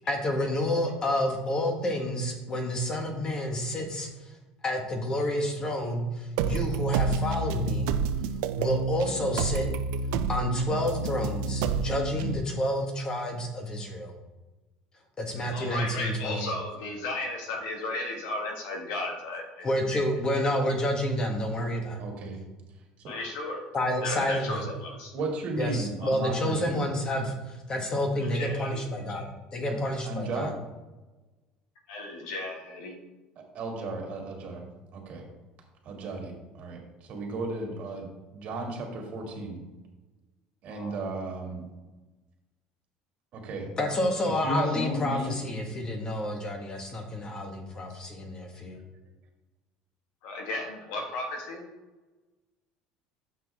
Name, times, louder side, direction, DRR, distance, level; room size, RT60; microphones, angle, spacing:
voice 1, 0.1-4.1 4.6-7.9 8.6-9.7 10.3-14.1 15.2-16.5 19.6-22.1 23.7-24.6 25.6-30.5 43.8-48.8, left 1 dB, 30° left, 3 dB, 1.5 m, -29 dB
sound 1, 6.4-12.4, right 4 dB, 80° right, 0.4 m, -29 dB
voice 2, 15.5-20.0 23.1-23.6 24.0-25.1 26.0-26.1 28.2-29.3 31.9-33.0 40.7-40.9 50.2-51.6, left 2 dB, 85° left, 1 dB, 1.8 m, -35 dB
voice 3, 22.0-22.4 25.1-26.8 29.7-29.8 30.0-30.5 33.4-34.6 34.9-35.2 35.8-39.6 40.6-41.6 43.3-43.7 44.4-45.3, right 2 dB, 55° right, 0 dB, 2.2 m, -34 dB
7.4 x 5.9 x 3.6 m, 1.1 s
supercardioid pair, 115°, 3 cm